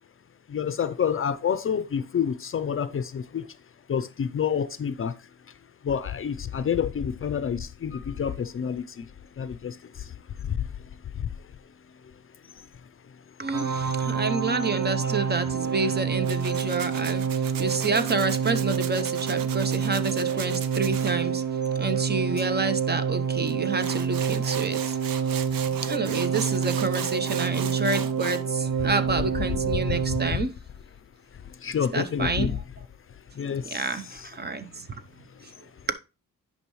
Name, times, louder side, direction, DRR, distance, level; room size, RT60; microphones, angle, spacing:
voice 1, 0.5-3.5 3.9-5.1 5.8-9.1 9.4-10.7 11.1-11.3 12.6-12.7 29.7-30.4 31.4-32.6 33.3-33.9 34.2-34.3 35.3-35.6, left 7 dB, 40° left, 0.5 m, -29 dB
voice 2, 13.4-25.0 25.6-30.5 31.9-32.6 33.6-34.9 35.4-35.5, right 3 dB, 30° right, 0.7 m, -29 dB
sound 1, 13.5-30.3, right 7 dB, 60° right, 0.9 m, -27 dB
Tools, 16.2-21.1 23.5-23.6 23.8-28.4, right 9 dB, 85° right, 0.8 m, -38 dB
9.9 x 5.5 x 3.1 m
cardioid pair, 110°, 33 cm